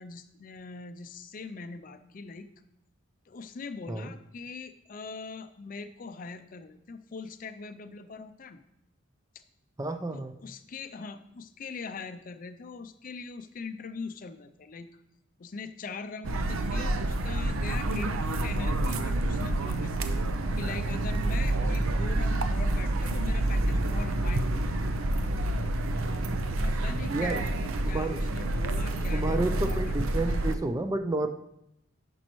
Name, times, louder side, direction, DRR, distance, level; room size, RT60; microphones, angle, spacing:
voice 1, 0.0-2.5 3.3-8.6 10.1-14.9 15.4-20.1 20.6-24.6 26.6-29.9 30.2-30.6, left 4 dB, 40° left, 10 dB, 0.4 m, -42 dB
voice 2, 9.8-10.4 27.1-27.4 27.8-28.2 29.1-31.3, right 2 dB, 15° right, 8 dB, 0.4 m, -30 dB
sound 1, 16.2-30.6, right 1 dB, 85° right, 0.6 m, -28 dB
10.0 x 5.3 x 3.1 m, 0.81 s
head